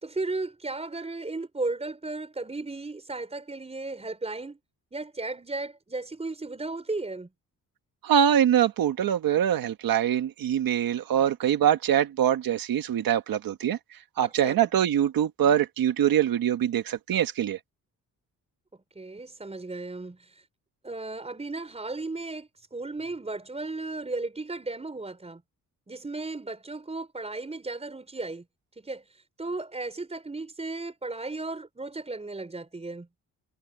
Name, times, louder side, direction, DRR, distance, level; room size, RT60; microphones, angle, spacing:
voice 1, 0.0-4.6 4.9-7.3 14.2-14.6 18.7-20.4 20.8-25.4 25.9-28.4 28.8-33.1, right 3 dB, 20° right, 5.1 m, -35 dB
voice 2, 8.0-13.8 14.2-17.6, right 10 dB, 85° right, 1.7 m, -24 dB
cardioid pair, 120°, 34 cm